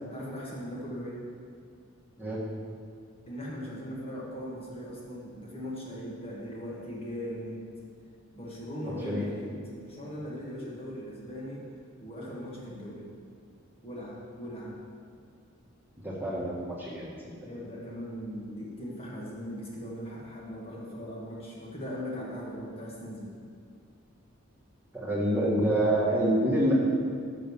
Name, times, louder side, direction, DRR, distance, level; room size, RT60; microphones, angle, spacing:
voice 1, 0.1-1.2 3.3-7.7 8.3-9.5 9.8-11.7 12.0-13.1 13.8-14.8 17.4-23.3, equal, 30° left, -5 dB, 1.3 m, -39 dB
voice 2, 8.8-9.3 16.0-17.4 24.9-26.7, right 1 dB, 10° right, -6 dB, 1.4 m, -27 dB
6.3 x 6.2 x 7.0 m, 2.2 s
head